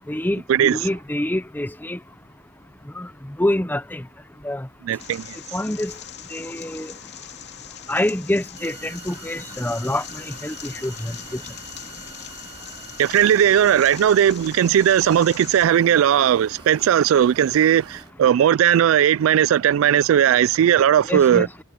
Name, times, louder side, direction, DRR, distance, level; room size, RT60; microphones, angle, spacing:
voice 1, 0.1-2.0 3.0-3.1 3.4-4.0 4.4-4.7 5.5-5.9 6.3-6.9 7.9-10.0 10.4-11.1 21.1-21.6, left 1 dB, 10° left, 0.7 m, -26 dB
voice 2, 4.8-5.3 13.0-21.5, right 9 dB, 90° right, 0.3 m, -17 dB
sound 1, 5.0-15.7, left 9 dB, 55° left, 2.8 m, -41 dB
sound 2, 8.6-18.1, right 4 dB, 25° right, 2.8 m, -45 dB
head